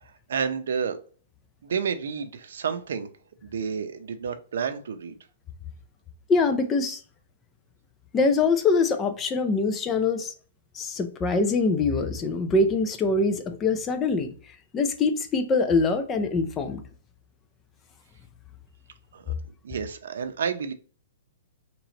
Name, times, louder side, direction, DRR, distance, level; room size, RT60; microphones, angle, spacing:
voice 1, 0.0-1.0 1.6-3.1 3.4-5.2 19.1-19.3 19.6-20.7, right 6 dB, 70° right, 0.6 m, -30 dB
voice 2, 6.3-7.0 8.1-10.3 10.7-16.8, left 3 dB, 15° left, 0.4 m, -24 dB
3.1 x 3.0 x 3.8 m
hypercardioid pair, 165°, 0 cm